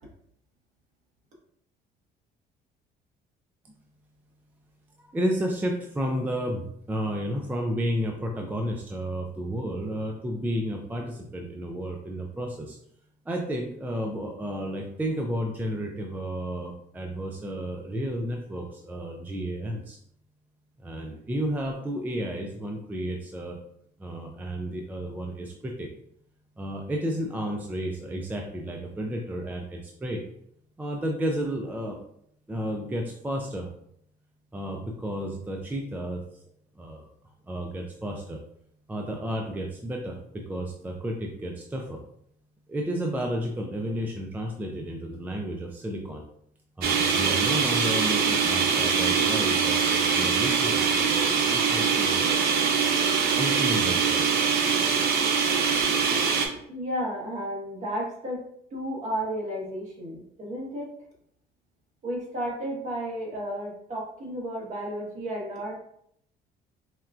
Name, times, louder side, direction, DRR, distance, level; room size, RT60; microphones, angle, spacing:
voice 1, 5.0-12.8 13.3-20.0 20.8-23.6 24.0-25.9 26.6-30.2 30.8-32.0 32.5-33.7 34.5-36.2 36.8-37.1 37.5-38.4 38.9-42.0 42.7-46.2 46.8-52.4 53.4-54.3, equal, 10° right, 1 dB, 0.3 m, -32 dB
sound 1, 46.8-56.5, right 6 dB, 70° right, 0.6 m, -23 dB
voice 2, 56.7-58.4 58.7-60.9 62.0-65.8, equal, 45° right, -3 dB, 1.3 m, -33 dB
4.2 x 2.3 x 2.3 m, 0.70 s
cardioid pair, 110°, 17 cm